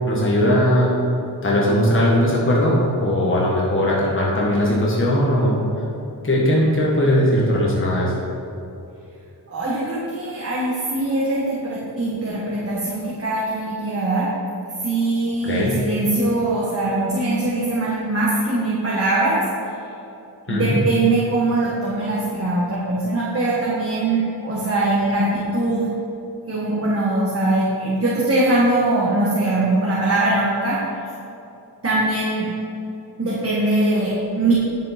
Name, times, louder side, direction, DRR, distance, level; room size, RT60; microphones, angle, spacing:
voice 1, 0.1-0.9 1.4-5.6 6.2-8.1 15.5-15.8 20.5-20.8, equal, 30° left, -5 dB, 1.5 m, -19 dB
voice 2, 9.5-14.3 14.8-19.5 20.5-25.9 26.5-30.8 31.8-32.5 33.2-34.5, right 2 dB, 35° right, -7 dB, 1.5 m, -21 dB
9.7 x 7.5 x 4.3 m, 2.9 s
wide cardioid pair, 160°, 40 cm